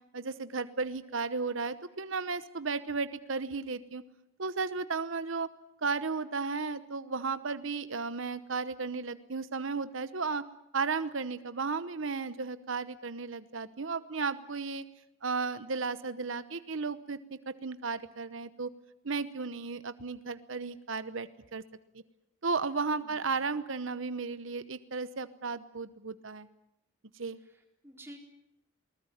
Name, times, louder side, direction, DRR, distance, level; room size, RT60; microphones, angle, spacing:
voice 1, 0.1-4.0 4.4-5.5 5.8-10.4 10.7-14.8 15.2-18.7 19.0-21.6 22.4-26.5 27.1-27.4, right 4 dB, 70° right, 13 dB, 1.0 m, -34 dB
voice 2, 23.0-23.4 27.4-28.2, equal, 10° right, 1 dB, 4.1 m, -52 dB
21.0 x 19.5 x 9.9 m, 0.81 s
head